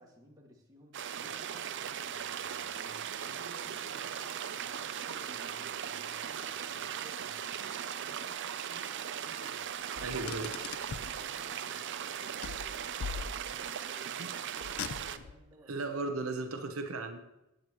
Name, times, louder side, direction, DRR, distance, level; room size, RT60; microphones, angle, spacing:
voice 1, 0.0-10.6 10.9-15.9 16.5-16.7, equal, 20° right, -2 dB, 2.1 m, -57 dB
sound 1, 0.9-15.2, right 9 dB, 60° right, 0.6 m, -38 dB
Car, 10.0-11.2 12.4-13.7 14.6-15.4, left 6 dB, 80° left, 0.5 m, -41 dB
voice 2, 10.0-10.5 11.7-11.8 14.2-14.3 15.7-17.2, right 3 dB, 80° right, 6 dB, 0.9 m, -36 dB
16.0 x 8.8 x 3.1 m, 0.90 s
head